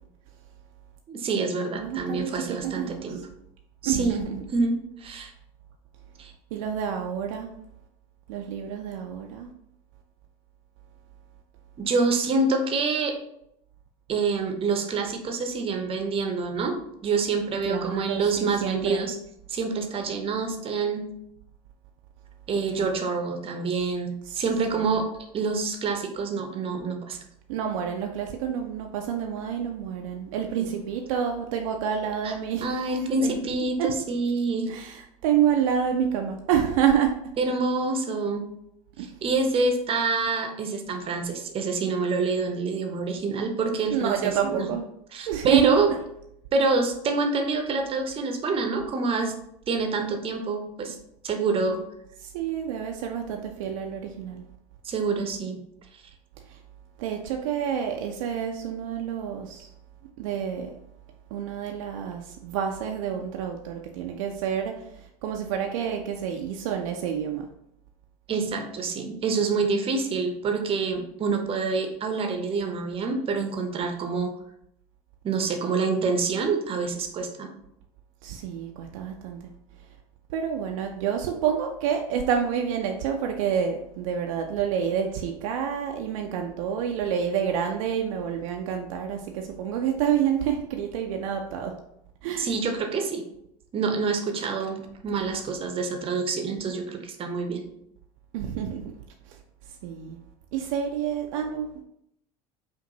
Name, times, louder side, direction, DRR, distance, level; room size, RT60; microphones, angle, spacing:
voice 1, 1.1-3.2 3.8-4.3 4.5-5.3 6.2-6.3 11.8-13.2 14.1-19.2 19.5-21.1 22.5-25.1 25.3-27.2 30.6-30.7 32.2-32.3 32.6-34.7 37.4-38.5 39.2-44.7 45.1-45.9 46.5-49.4 49.7-51.0 51.2-51.8 54.8-55.6 68.3-74.3 75.2-77.5 92.4-93.2 93.7-97.6, right 4 dB, 30° right, 5 dB, 0.7 m, -27 dB
voice 2, 1.8-3.1 3.8-4.4 6.5-7.5 8.3-9.5 17.7-19.0 24.3-24.4 24.7-24.8 27.5-33.4 33.8-33.9 34.7-37.2 39.0-39.1 43.9-44.8 45.3-45.8 52.2-54.4 56.5-56.6 57.0-59.7 60.2-60.7 61.3-67.5 78.2-79.4 80.3-91.7 92.2-92.5 98.3-98.9 99.3-99.4 99.8-100.2 100.5-101.8, right 8 dB, 60° right, 3 dB, 0.5 m, -28 dB
5.1 x 2.5 x 2.9 m, 0.76 s
figure-of-eight pair, 70°, 19 cm